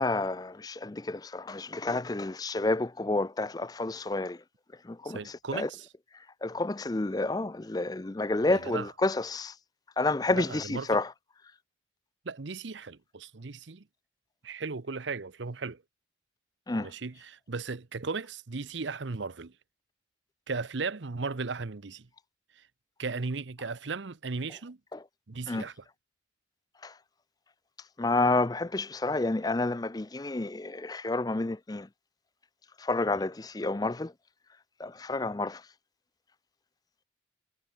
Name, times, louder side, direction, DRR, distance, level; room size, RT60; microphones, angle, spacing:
voice 1, 0.0-4.4 4.9-5.2 5.5-5.7 6.4-9.5 10.0-11.1 16.7-16.9 24.9-25.0 25.5-25.6 26.8-26.9 28.0-31.9 32.8-34.1 34.8-35.6, left 2 dB, 20° left, 0.5 m, -29 dB
voice 2, 5.0-5.9 8.5-8.9 10.3-11.0 12.2-13.8 14.4-15.8 16.8-19.5 20.5-22.1 22.6-22.7 23.0-24.8 25.3-25.9 33.1-33.2, right 4 dB, 75° right, 0.8 m, -36 dB
head